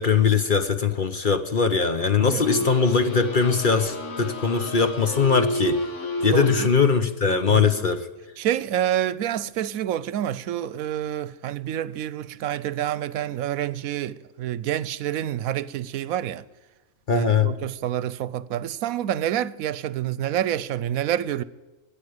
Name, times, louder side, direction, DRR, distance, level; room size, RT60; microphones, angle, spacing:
voice 1, 0.0-5.8 6.2-8.1 17.1-17.5, left 5 dB, 40° left, 0.9 m, -21 dB
sound 1, 2.4-7.0, left 1 dB, 60° left, 2.0 m, -31 dB
voice 2, 6.3-6.7 7.5-7.8 8.4-16.4 17.1-21.4, right 11 dB, 80° right, 1.1 m, -28 dB
13.5 x 8.9 x 9.5 m
omnidirectional pair, 1.5 m